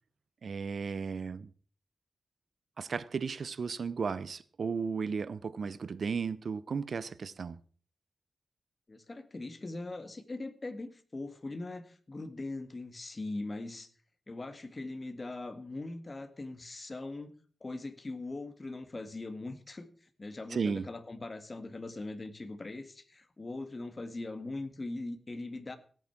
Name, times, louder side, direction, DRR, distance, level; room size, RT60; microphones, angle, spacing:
voice 1, 0.4-1.5 2.8-7.6 20.5-20.9, right 5 dB, 65° right, 0.8 m, -34 dB
voice 2, 8.9-13.9 14.3-17.4 17.6-19.9 20.2-25.8, left 2 dB, 30° left, 1.9 m, -41 dB
16.0 x 9.1 x 5.9 m
wide cardioid pair, 100°, 0 cm